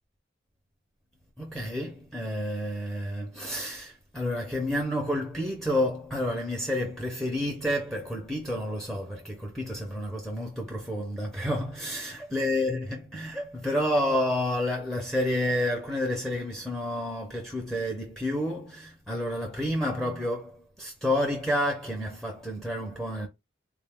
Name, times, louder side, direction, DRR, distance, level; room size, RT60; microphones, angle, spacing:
voice 1, 1.4-23.3, left 1 dB, ahead, 0.6 m, -30 dB
3.5 x 2.3 x 3.4 m
head